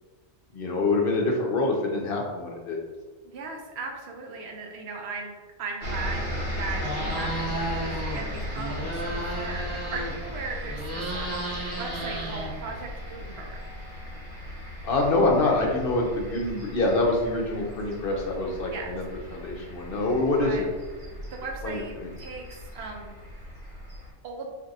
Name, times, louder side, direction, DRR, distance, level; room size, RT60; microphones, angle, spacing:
voice 1, 0.5-2.8 14.8-19.0 19.3-20.7 21.6-22.1, left 2 dB, 60° left, 0 dB, 0.7 m, -25 dB
voice 2, 3.2-5.3 5.6-6.3 6.6-11.4 11.8-13.6 18.7-18.9 20.4-20.6 21.3-21.9 22.2-23.5 24.2-24.5, right 4 dB, 70° right, 0 dB, 0.8 m, -38 dB
sound 1, 5.8-24.1, equal, 85° right, 1.1 m, -37 dB
sound 2, 6.8-8.2 8.5-10.3 10.6-12.9, right 1 dB, 30° right, 0.8 m, -33 dB
2.6 x 2.5 x 3.9 m, 1.3 s
omnidirectional pair, 1.2 m